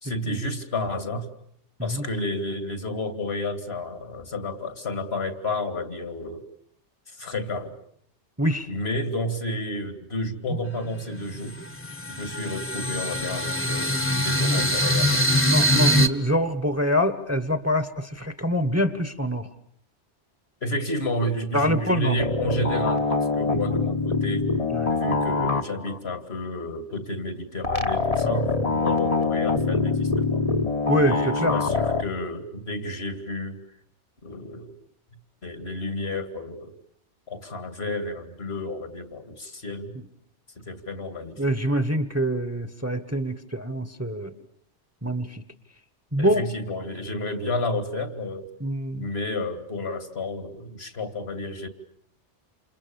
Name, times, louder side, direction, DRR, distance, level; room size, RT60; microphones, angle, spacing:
voice 1, 0.0-1.3 1.8-6.5 7.1-7.8 8.7-11.6 12.1-13.9 14.2-15.1 20.6-24.5 24.9-28.5 28.8-30.4 30.9-33.6 34.2-34.7 35.4-36.7 37.3-39.9 40.6-41.4 46.2-48.5 48.9-51.7, left 1 dB, 65° left, 9 dB, 2.6 m, -31 dB
sound 1, 10.7-10.8 11.2-16.1, equal, 10° left, 1.3 m, -23 dB
voice 2, 15.4-19.5 21.5-22.1 24.7-24.9 28.2-28.8 30.9-31.5 41.4-44.3 45.0-45.4 46.1-46.4 48.6-49.1, equal, 15° right, 11 dB, 1.4 m, -25 dB
sound 2, 22.2-26.0 27.6-32.0, left 3 dB, 35° left, 1.3 m, -24 dB
28.5 x 28.0 x 7.1 m, 0.66 s
omnidirectional pair, 1.2 m